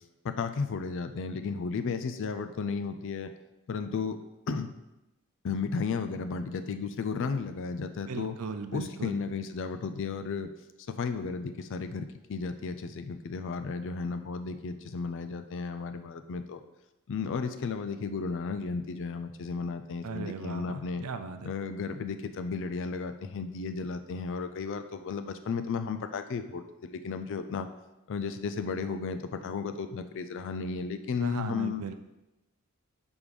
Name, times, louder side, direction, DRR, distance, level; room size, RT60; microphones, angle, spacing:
voice 1, 0.2-3.3 3.7-4.2 4.5-4.7 5.4-8.4 8.7-10.5 11.0-16.6 17.1-21.1 21.4-27.7 28.1-31.8, left 5 dB, 60° left, 9 dB, 0.4 m, -34 dB
voice 2, 8.1-9.2 20.0-21.5 31.2-31.9, right 4 dB, 80° right, 8 dB, 0.5 m, -37 dB
5.2 x 4.8 x 5.2 m, 0.98 s
head